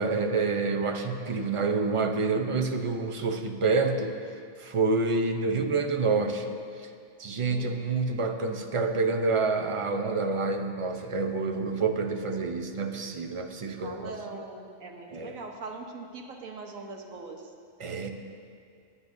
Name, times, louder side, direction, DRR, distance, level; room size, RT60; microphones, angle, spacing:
voice 1, 0.0-4.1 4.6-6.9 7.2-14.1 15.1-15.4 17.8-18.1, right 4 dB, 35° right, 4 dB, 0.6 m, -28 dB
voice 2, 7.5-7.8 13.8-17.5, right 3 dB, 85° right, 2 dB, 1.5 m, -41 dB
21.0 x 10.0 x 2.7 m, 2.3 s
omnidirectional pair, 1.4 m